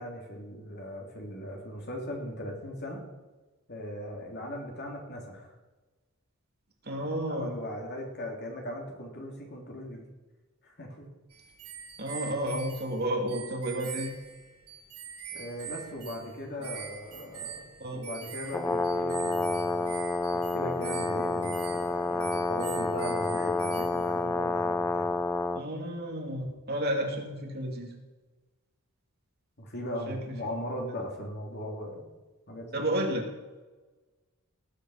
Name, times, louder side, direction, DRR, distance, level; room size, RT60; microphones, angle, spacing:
voice 1, 0.0-3.0 3.7-5.5 7.0-10.0 10.6-11.0 15.3-19.9 20.3-25.2 29.6-32.1 32.5-32.9, left 1 dB, 50° left, 0 dB, 3.3 m, -39 dB
voice 2, 6.8-7.6 12.0-14.1 17.8-18.0 25.5-27.9 30.1-30.4 32.7-33.2, right 1 dB, 45° right, 1 dB, 2.6 m, -31 dB
sound 1, 11.3-24.3, right 8 dB, 85° right, 1.8 m, -44 dB
Brass instrument, 18.5-25.6, left 3 dB, 10° left, 0.7 m, -29 dB
18.5 x 8.3 x 5.8 m, 1.2 s
head